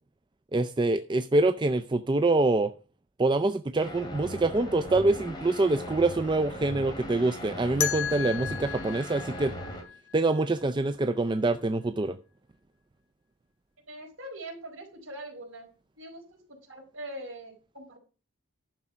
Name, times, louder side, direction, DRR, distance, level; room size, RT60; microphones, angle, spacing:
voice 1, 0.5-2.7 3.2-9.5 10.1-12.2, right 2 dB, 20° right, 0.4 m, -25 dB
sound 1, 3.8-9.8, equal, 20° left, 2.7 m, -39 dB
sound 2, 7.8-10.7, left 9 dB, 75° left, 1.0 m, -34 dB
voice 2, 13.9-15.7 16.0-18.0, right 1 dB, 65° right, 4.4 m, -42 dB
11.0 x 6.2 x 5.6 m
head